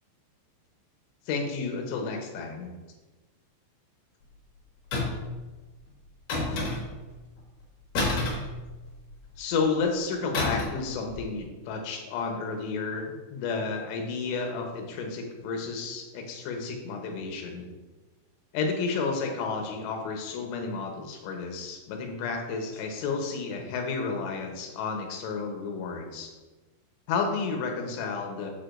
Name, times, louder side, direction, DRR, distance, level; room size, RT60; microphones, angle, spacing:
voice 1, 1.3-2.7 9.4-17.7 18.5-26.3 27.1-28.5, left 4 dB, 75° left, 2 dB, 3.0 m, -31 dB
sound 1, 4.9-5.4 6.3-7.1 7.9-9.1 10.3-10.9 11.1-11.3, left 2 dB, 55° left, 2.7 m, -29 dB
8.3 x 6.6 x 2.6 m, 1.2 s
omnidirectional pair, 5.4 m